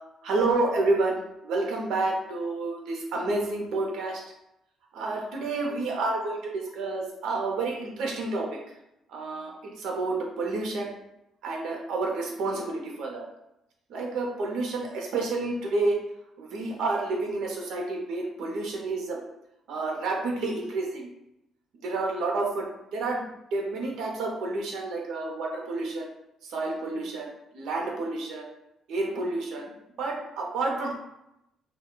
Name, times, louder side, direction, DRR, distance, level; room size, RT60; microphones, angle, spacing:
voice 1, 0.2-4.2 4.9-8.5 9.1-10.9 11.4-13.3 13.9-16.0 16.4-19.2 19.7-21.1 21.8-22.7 22.9-26.1 26.5-28.5 28.9-29.7 30.0-31.0, right 3 dB, 70° right, 0 dB, 0.7 m, -29 dB
2.3 x 2.2 x 3.7 m, 0.85 s
cardioid pair, 170°, 0 cm